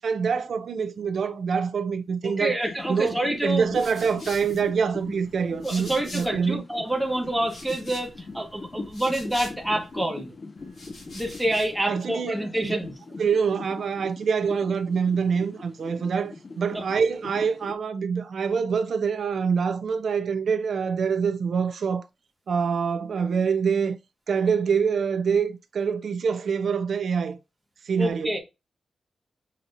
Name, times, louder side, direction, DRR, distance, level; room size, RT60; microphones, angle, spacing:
voice 1, 0.0-2.6 2.9-6.6 11.8-12.8 13.2-22.0 22.5-24.0 24.3-27.4 27.9-28.4, right 6 dB, 65° right, 0.5 m, -25 dB
voice 2, 2.2-3.6 5.6-10.3 11.1-12.9 16.7-16.8 28.0-28.4, right 1 dB, 5° right, 0.9 m, -27 dB
sound 1, 2.6-17.7, left 3 dB, 35° left, 0.5 m, -42 dB
sound 2, 3.4-6.6 6.9-10.0 10.6-11.8, left 2 dB, 60° left, 2.5 m, -45 dB
6.2 x 2.8 x 2.5 m
wide cardioid pair, 130°, 0 cm